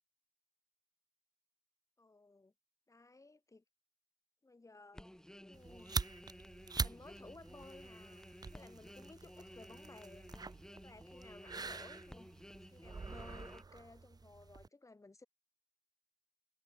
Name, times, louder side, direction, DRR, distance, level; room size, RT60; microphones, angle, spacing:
voice 1, 2.0-2.5 2.9-3.6 4.4-5.1 5.4-6.0 6.8-10.4 10.7-12.3 12.6-15.3, left 3 dB, 25° left, 0.7 m, -58 dB
sound 1, 4.9-13.6, equal, 5° left, 1.1 m, -55 dB
sound 2, 5.5-14.7, right 4 dB, 30° right, 0.4 m, -45 dB
wide cardioid pair, 90°, 14 cm